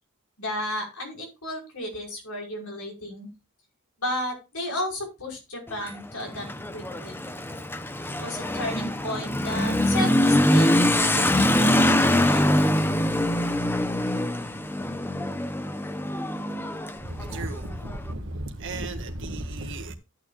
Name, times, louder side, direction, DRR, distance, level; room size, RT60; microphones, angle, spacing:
voice 1, 0.4-3.3 4.0-6.5 6.7-7.2 8.1-12.5, left 1 dB, 85° left, 5.4 m, -33 dB
Motorcycle / Accelerating revving vroom, 5.7-18.0, left 1 dB, 10° left, 0.6 m, -24 dB
voice 2, 17.0-19.9, right 1 dB, 60° right, 1.8 m, -34 dB
14.0 x 9.1 x 2.4 m
head